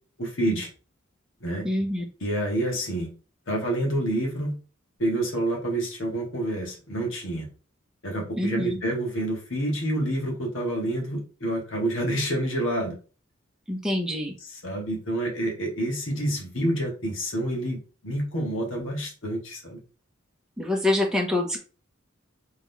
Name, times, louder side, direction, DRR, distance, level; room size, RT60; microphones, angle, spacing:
voice 1, 0.2-0.7 1.4-1.7 2.2-3.1 3.5-4.6 5.0-7.5 8.0-13.0 14.4-19.8, right 1 dB, 65° left, 0 dB, 1.8 m, -28 dB
voice 2, 1.6-2.0 8.3-8.8 13.7-14.3 20.6-21.6, left 1 dB, 5° right, 0 dB, 0.9 m, -25 dB
3.8 x 3.6 x 3.4 m, 0.35 s
head